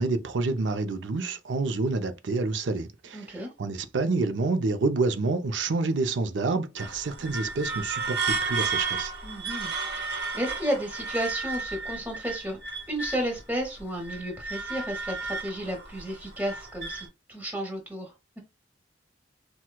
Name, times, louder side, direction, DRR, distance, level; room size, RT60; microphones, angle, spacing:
voice 1, 0.0-9.1, right 3 dB, 80° right, 0.5 m, -28 dB
voice 2, 3.1-3.5 9.2-12.6 12.9-18.4, equal, 10° right, 1.1 m, -33 dB
sound 1, 6.8-13.4 13.8-17.1, right 4 dB, 60° right, 1.1 m, -33 dB
4.4 x 2.2 x 2.3 m
head